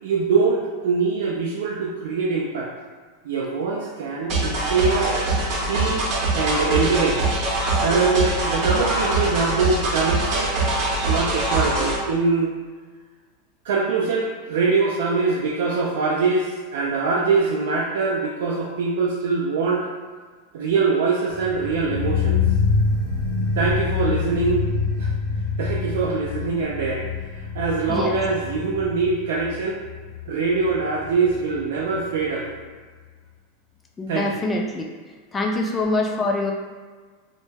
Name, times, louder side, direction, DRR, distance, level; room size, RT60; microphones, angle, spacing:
voice 1, 0.0-2.7 3.2-5.1 5.7-6.1 6.3-7.2 7.8-10.5 11.1-12.5 13.6-19.9 20.5-22.4 23.5-24.7 25.0-25.1 25.6-27.0 27.3-29.8 30.3-32.6 34.1-34.4, right 4 dB, 75° right, -3 dB, 0.3 m, -23 dB
sound 1, 4.3-12.0, right 2 dB, 45° right, 0.7 m, -23 dB
sound 2, 21.3-32.3 32.6-32.7, left 5 dB, 70° left, 0.7 m, -26 dB
voice 2, 27.9-28.2 34.0-34.8 35.3-36.5, left 2 dB, 15° left, 1 dB, 0.4 m, -24 dB
2.2 x 2.1 x 3.2 m, 1.5 s
supercardioid pair, 125°, 0 cm